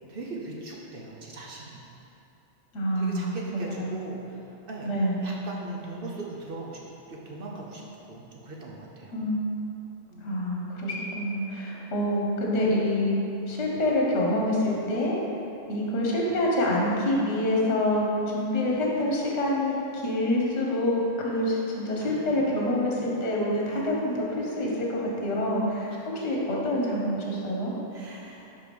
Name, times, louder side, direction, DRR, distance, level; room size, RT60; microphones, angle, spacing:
voice 1, 0.1-1.8 2.9-4.9 5.2-6.8 7.1-9.2 10.1-10.4 22.0-23.1 23.6-24.2 25.9-26.1 27.9-28.6, right 2 dB, 50° right, -2 dB, 0.9 m, -40 dB
voice 2, 2.7-4.0 4.8-5.2 9.1-9.4 10.2-13.2 13.4-15.2 15.7-27.7, left 1 dB, 65° left, -3 dB, 1.3 m, -26 dB
5.3 x 4.8 x 5.2 m, 2.9 s
omnidirectional pair, 1.3 m